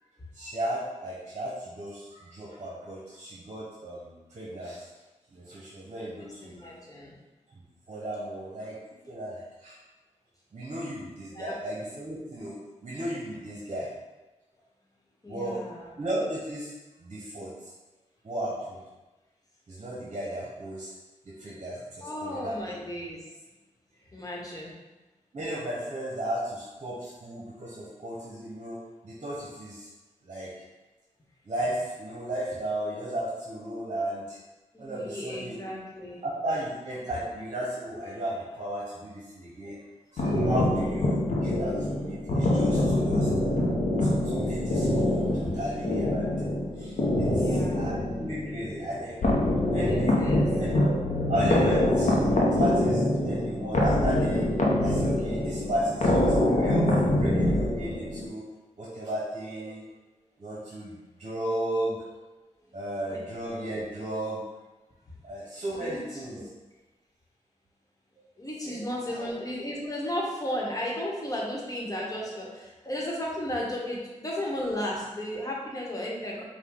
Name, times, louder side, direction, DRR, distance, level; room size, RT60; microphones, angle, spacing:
voice 1, 0.3-4.9 5.3-6.7 7.5-7.6 7.9-8.8 9.1-9.8 10.5-14.0 15.3-17.7 18.2-18.8 19.7-20.9 21.2-22.6 25.3-29.9 30.2-30.6 31.4-34.4 34.8-35.7 36.2-39.8 40.1-43.3 44.0-46.4 46.7-49.2 49.6-50.9 51.3-52.2 52.5-54.5 54.8-58.5 58.8-59.9 60.4-62.2 62.7-64.6 65.2-66.5 68.6-68.8 69.1-69.3, right 1 dB, 55° right, -5 dB, 1.0 m, -35 dB
voice 2, 6.2-7.1 11.3-11.6 15.2-15.9 22.0-23.2 24.1-24.7 34.7-36.2 45.4-45.5 47.3-48.0 49.9-50.5 62.7-62.8 63.1-63.2 65.7-66.2 68.4-76.4, left 1 dB, 30° left, -3 dB, 1.2 m, -34 dB
sound 1, 40.2-58.3, left 1 dB, 75° left, 0.7 m, -25 dB
5.0 x 2.2 x 3.7 m, 1.1 s
cardioid pair, 60°, 13 cm